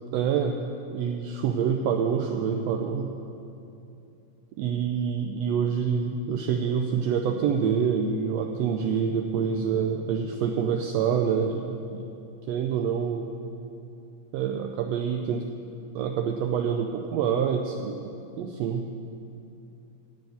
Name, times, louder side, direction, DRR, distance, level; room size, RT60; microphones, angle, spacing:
voice 1, 0.1-0.6 0.9-3.1 4.6-12.0 12.5-13.3 14.3-15.5 16.0-18.1 18.4-18.9, right 7 dB, 75° right, 4 dB, 1.6 m, -26 dB
13.5 x 5.0 x 9.1 m, 2.7 s
omnidirectional pair, 3.3 m